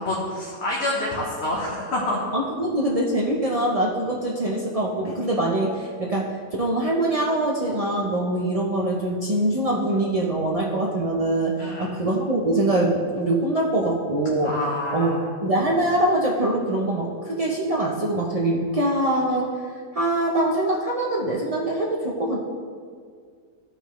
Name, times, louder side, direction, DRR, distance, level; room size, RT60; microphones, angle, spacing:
voice 1, 0.0-2.2 11.6-11.9 14.4-15.3, left 1 dB, 45° left, -4 dB, 1.2 m, -27 dB
voice 2, 2.3-14.6 14.9-19.6 19.9-22.4, right 1 dB, 65° right, -3 dB, 0.3 m, -23 dB
14.0 x 5.3 x 3.1 m, 2.1 s
omnidirectional pair, 1.8 m